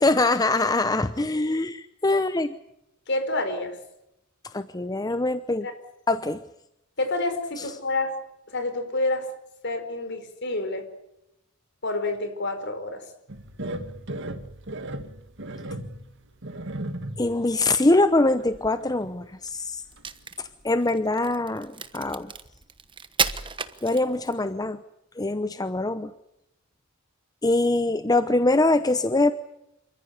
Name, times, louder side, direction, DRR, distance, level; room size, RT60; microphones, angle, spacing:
voice 1, 0.0-2.6 4.5-5.7 6.1-6.4 17.2-19.8 20.4-22.3 23.8-24.8 25.2-26.1 27.4-29.3, left 2 dB, 20° left, 11 dB, 0.8 m, -23 dB
voice 2, 3.1-3.8 5.1-5.2 5.6-5.7 7.0-8.1 8.5-9.3 9.6-10.9 11.8-13.0, left 2 dB, 60° left, 8 dB, 4.9 m, -28 dB
sound 1, 13.3-17.4 17.8-17.9 18.4-19.1 19.5-19.6 20.0-20.1, right 1 dB, 60° right, 2.0 m, -36 dB
Crack, 19.8-24.5, right 6 dB, 25° right, 1.2 m, -32 dB
27.5 x 14.5 x 9.7 m, 0.84 s
head